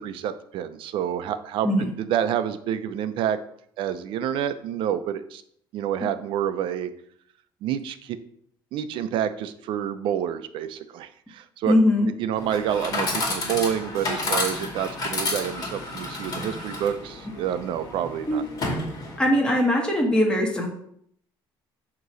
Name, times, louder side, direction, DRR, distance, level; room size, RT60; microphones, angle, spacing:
voice 1, 0.0-1.7 2.0-3.4 3.8-5.4 5.7-6.9 7.6-8.2 8.7-11.8 12.2-18.4, right 9 dB, 70° right, 11 dB, 0.6 m, -28 dB
voice 2, 11.7-12.1 18.3-18.4 19.2-20.7, left 1 dB, 10° left, -1 dB, 1.5 m, -20 dB
Chatter / Coin (dropping), 12.4-19.4, left 2 dB, 45° left, 2.1 m, -31 dB
8.0 x 3.0 x 6.2 m, 0.68 s
cardioid pair, 140°, 9 cm